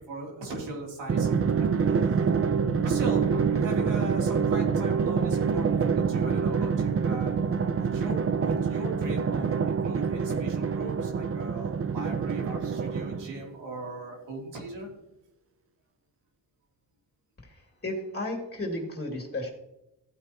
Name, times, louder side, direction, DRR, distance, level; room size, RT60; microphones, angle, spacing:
voice 1, 0.1-1.7 2.1-2.3 2.8-7.3 7.8-14.9, right 2 dB, 90° right, -1 dB, 3.4 m, -38 dB
Drum, 1.1-13.5, right 6 dB, 35° right, 0.6 m, -26 dB
voice 2, 17.4-19.5, left 1 dB, 25° left, 1 dB, 2.6 m, -34 dB
14.5 x 8.8 x 3.0 m, 0.90 s
cardioid pair, 80°, 42 cm